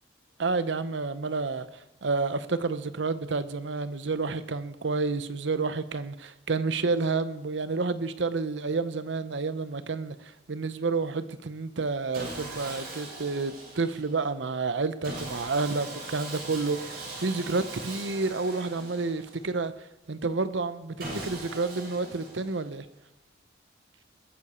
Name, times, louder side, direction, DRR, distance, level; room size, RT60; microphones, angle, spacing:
voice 1, 0.4-22.9, right 3 dB, 80° right, 12 dB, 0.8 m, -30 dB
Sawing, 12.1-14.2 15.0-19.6 21.0-22.8, right 2 dB, 55° right, 6.5 m, -40 dB
21.5 x 9.9 x 4.3 m, 0.92 s
head